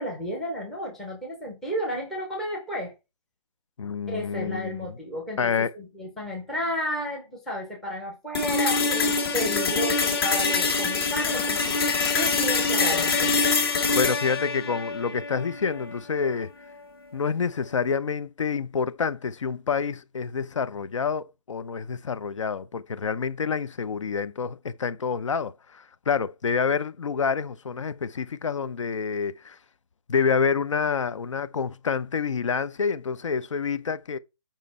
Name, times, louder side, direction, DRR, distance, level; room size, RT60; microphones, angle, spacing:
voice 1, 0.0-2.9 4.1-11.7 12.1-13.6, equal, ahead, 0.6 m, -32 dB
voice 2, 3.8-4.9 5.4-5.7 14.0-16.5 17.1-29.6 30.1-34.2, left 6 dB, 60° left, 0.6 m, -28 dB
sound 1, 8.3-16.4, left 4 dB, 45° left, 1.8 m, -25 dB
7.5 x 5.1 x 4.1 m
hypercardioid pair, 180°, 18 cm